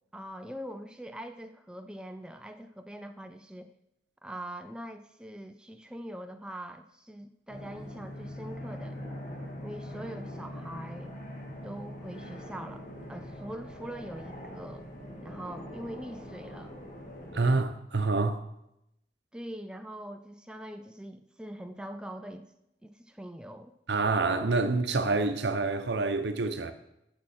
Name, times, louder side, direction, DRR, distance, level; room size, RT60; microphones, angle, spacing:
voice 1, 0.1-3.7 4.2-9.0 9.6-11.2 11.6-14.9 15.2-16.7 19.3-22.5 22.8-23.7, right 1 dB, 5° right, 0.3 m, -42 dB
sound 1, 7.5-17.6, equal, 45° left, 1.8 m, -42 dB
voice 2, 17.3-18.5 23.9-26.7, right 3 dB, 75° right, 0.8 m, -27 dB
14.5 x 6.0 x 4.3 m
head